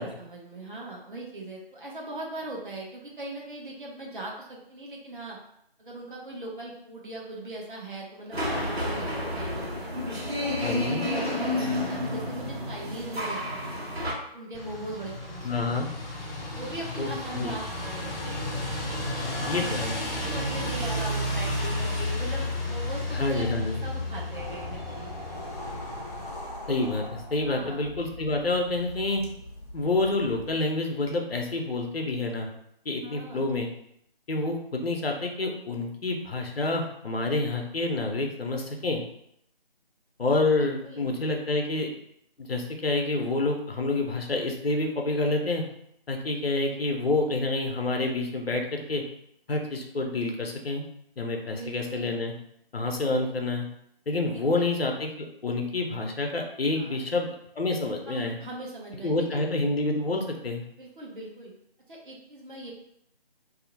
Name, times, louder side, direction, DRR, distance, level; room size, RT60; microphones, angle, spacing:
voice 1, 0.0-5.4 5.8-9.0 9.3-9.9 10.3-13.6 14.3-15.5 16.6-18.5 19.4-19.9 20.2-23.5 23.8-25.1 27.4-27.8 33.0-33.5 40.6-41.1 51.5-52.1 54.5-54.6 56.7-57.0 58.1-59.4 60.8-61.5 61.9-62.7, right 2 dB, 55° right, -3 dB, 1.0 m, -40 dB
sound 1, 8.3-14.1, left 1 dB, 90° right, 1.2 m, -30 dB
voice 2, 10.6-11.1 15.4-15.9 17.0-17.1 17.3-17.6 19.4-20.0 23.1-23.8 26.7-29.2 29.7-32.5 32.8-33.7 34.3-39.0 40.2-41.9 42.4-45.6 46.1-49.0 49.5-50.8 51.2-52.3 52.7-53.7 54.1-58.4 59.0-60.6, left 2 dB, 75° left, 2 dB, 0.7 m, -28 dB
sound 2, 14.5-26.3, left 1 dB, ahead, 0.4 m, -32 dB
sound 3, 23.8-30.6, left 1 dB, 40° left, 0.7 m, -41 dB
2.7 x 2.1 x 3.9 m, 0.73 s
figure-of-eight pair, 160°, 30 cm